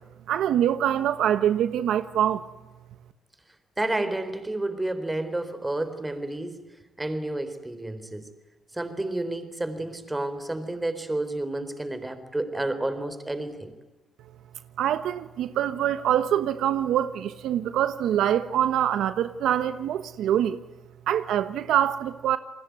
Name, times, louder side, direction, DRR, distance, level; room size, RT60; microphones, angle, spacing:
voice 1, 0.3-2.5 14.8-20.6 21.1-22.4, right 10 dB, 80° right, 1.1 m, -24 dB
voice 2, 3.8-6.7 7.0-8.3 8.7-13.7, right 2 dB, 15° right, 4.0 m, -30 dB
30.0 x 20.5 x 9.4 m
cardioid pair, 90°, 0 cm